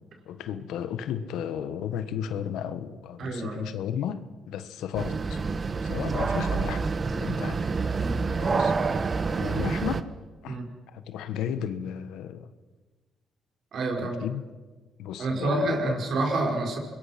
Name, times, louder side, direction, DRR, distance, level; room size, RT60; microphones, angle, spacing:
voice 1, 0.2-5.4 5.8-7.7 8.4-8.7 9.3-10.1 10.4-10.6 10.9-12.5 13.9-14.4 15.0-15.9, left 9 dB, 85° left, 11 dB, 1.4 m, -34 dB
voice 2, 3.2-3.7 8.0-8.2 10.5-10.7 13.7-14.2 15.2-16.8, right 2 dB, 65° right, 2 dB, 5.5 m, -28 dB
sound 1, 5.0-10.0, right 4 dB, 35° right, 1.2 m, -27 dB
26.0 x 21.5 x 6.0 m, 1.3 s
cardioid pair, 90°, 0 cm